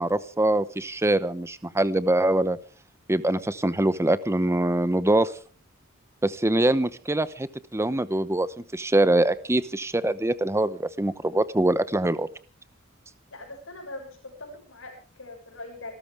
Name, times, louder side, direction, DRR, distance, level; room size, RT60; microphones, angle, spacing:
voice 1, 0.0-2.6 3.1-5.3 6.2-12.3, right 1 dB, 15° right, 15 dB, 0.9 m, -24 dB
voice 2, 13.3-15.9, left 2 dB, 70° left, 2 dB, 7.5 m, -41 dB
27.0 x 13.0 x 3.5 m, 0.38 s
head